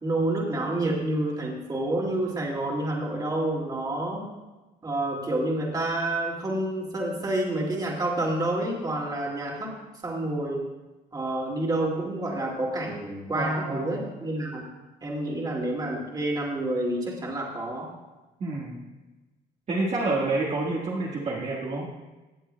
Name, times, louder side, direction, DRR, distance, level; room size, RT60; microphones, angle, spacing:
voice 1, 0.0-4.3 4.8-9.7 10.0-10.7 11.1-14.7 15.0-17.9, right 1 dB, 20° right, -2 dB, 2.4 m, -28 dB
voice 2, 13.3-14.0 18.4-18.8 19.7-21.9, right 2 dB, 40° right, -5 dB, 1.7 m, -28 dB
18.0 x 7.3 x 2.3 m, 1.1 s
cardioid pair, 110°, 17 cm